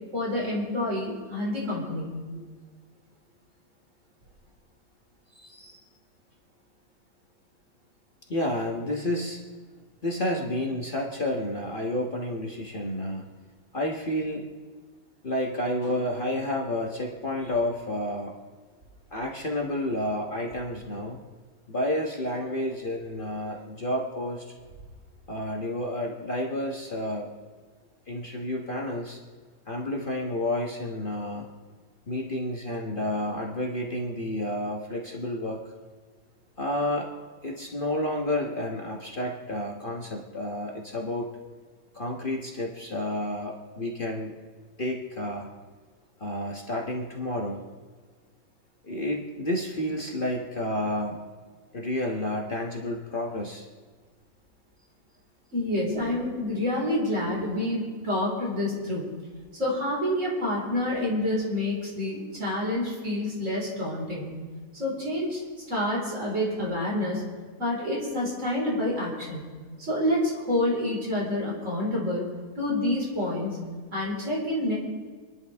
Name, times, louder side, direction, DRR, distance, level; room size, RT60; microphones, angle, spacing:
voice 1, 0.1-2.2 55.5-59.1 59.5-64.4 64.7-67.2 67.6-69.5 69.8-72.3 72.6-73.6 73.9-74.7, left 1 dB, 50° right, -4 dB, 4.9 m, -28 dB
voice 2, 5.3-5.8 8.3-9.4 10.0-13.2 13.7-14.5 15.2-18.4 19.1-21.2 21.7-24.5 25.3-27.3 28.1-29.2 29.7-31.5 32.1-35.6 36.6-37.1 37.4-41.3 41.9-44.3 44.8-45.5 46.2-47.6 48.8-51.2 51.7-53.7, left 1 dB, 35° left, -1 dB, 1.4 m, -30 dB
28.5 x 10.5 x 3.5 m, 1.5 s
omnidirectional pair, 1.6 m